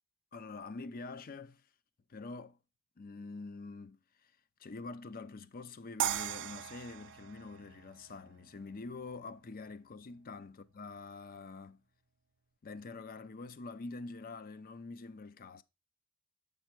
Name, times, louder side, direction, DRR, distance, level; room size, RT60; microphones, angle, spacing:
voice 1, 0.3-1.6 2.1-2.6 3.0-4.0 4.6-11.8 12.6-15.6, left 3 dB, 40° left, 0.5 m, -46 dB
sound 1, 6.0-9.1, right 11 dB, 55° right, 0.4 m, -38 dB
8.0 x 5.4 x 4.5 m
head